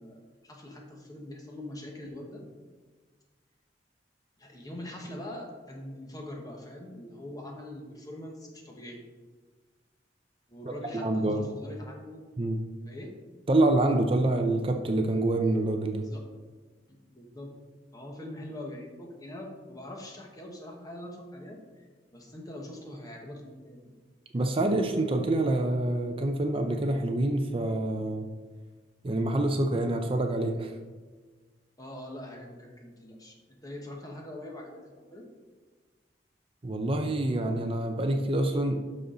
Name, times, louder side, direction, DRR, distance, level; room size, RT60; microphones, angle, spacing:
voice 1, 0.0-2.4 4.4-9.0 10.5-12.2 12.9-13.1 16.0-16.2 16.9-17.6 17.9-21.9 22.1-23.9 31.8-35.3, left 1 dB, 20° left, 0 dB, 1.3 m, -43 dB
voice 2, 11.0-11.4 12.4-12.6 13.5-16.1 24.3-28.3 29.0-30.7 36.6-38.8, right 2 dB, 30° right, 5 dB, 0.5 m, -26 dB
12.0 x 4.3 x 3.9 m, 1.4 s
head